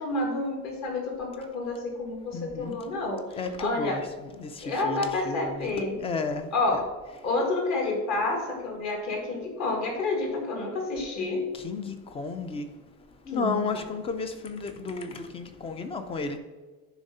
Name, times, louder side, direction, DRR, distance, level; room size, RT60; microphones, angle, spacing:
voice 1, 0.0-4.0 4.6-6.0 6.5-6.8 7.2-11.4 13.3-13.8, left 2 dB, 50° left, 0 dB, 2.0 m, -29 dB
voice 2, 2.3-2.8 3.4-6.5 11.6-12.7 13.3-16.4, left 4 dB, 15° left, 9 dB, 0.3 m, -33 dB
10.0 x 3.5 x 5.4 m, 1.3 s
cardioid pair, 180°, 36 cm